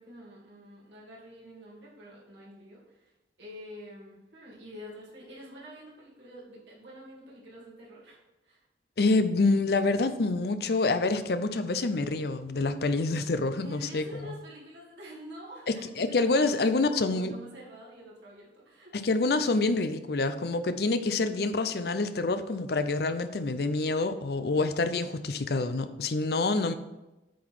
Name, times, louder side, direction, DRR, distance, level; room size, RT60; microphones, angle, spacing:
voice 1, 0.0-8.2 8.4-8.6 13.6-19.0, equal, 75° right, -5 dB, 2.7 m, -47 dB
voice 2, 9.0-14.3 15.7-17.3 18.9-26.7, left 3 dB, 60° left, 10 dB, 0.6 m, -27 dB
8.4 x 3.9 x 6.1 m, 0.99 s
head